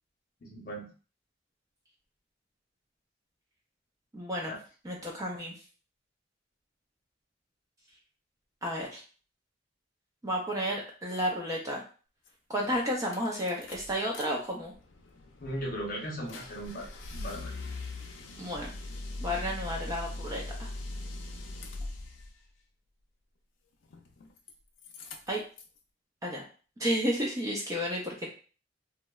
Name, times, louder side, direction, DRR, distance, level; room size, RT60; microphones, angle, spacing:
voice 1, 0.4-0.9 4.5-4.6 15.4-17.5, equal, 50° left, -1 dB, 0.7 m, -38 dB
voice 2, 4.1-4.5 4.8-5.5 8.6-9.0 10.2-11.8 12.5-14.7 18.4-18.7 19.2-20.7 25.3-25.4 26.2-26.4 26.8-28.3, equal, 20° right, -1 dB, 0.4 m, -32 dB
sound 1, 12.3-12.4 12.7-14.2 14.6-22.3 23.8-24.5 24.8-25.8, left 2 dB, 80° left, 0.4 m, -41 dB
2.7 x 2.0 x 2.2 m, 0.38 s
head